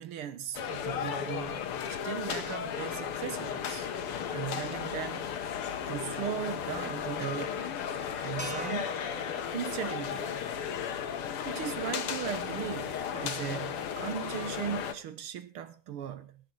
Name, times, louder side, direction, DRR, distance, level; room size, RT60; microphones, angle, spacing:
voice 1, 0.0-1.6 1.9-3.9 4.3-5.3 5.9-7.8 8.2-9.0 9.5-10.3 11.5-16.4, right 9 dB, 80° right, 2.1 m, -38 dB
sound 1, 0.5-14.9, left 8 dB, 90° left, 2.2 m, -35 dB
sound 2, 2.7-11.8, left 9 dB, 55° left, 1.2 m, -49 dB
sound 3, 8.4-12.7, right 1 dB, 5° right, 6.0 m, -47 dB
18.5 x 11.0 x 3.9 m
omnidirectional pair, 2.4 m